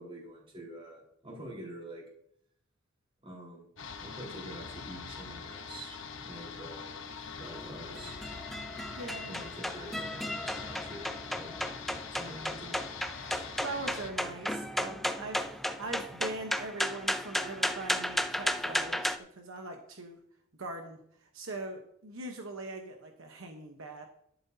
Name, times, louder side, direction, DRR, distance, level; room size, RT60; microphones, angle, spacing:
voice 1, 0.0-2.0 3.2-3.7 4.0-6.9 7.4-8.2 9.2-11.1 11.4-11.5 12.2-12.8, right 1 dB, 25° right, -2 dB, 4.3 m, -46 dB
sound 1, 3.8-14.1, left 5 dB, 65° left, 1.1 m, -43 dB
sound 2, 7.4-19.2, equal, ahead, 0.5 m, -34 dB
voice 2, 8.9-9.4 13.2-20.2 20.6-24.1, right 2 dB, 70° right, 3 dB, 1.1 m, -41 dB
12.0 x 11.5 x 2.8 m, 0.70 s
head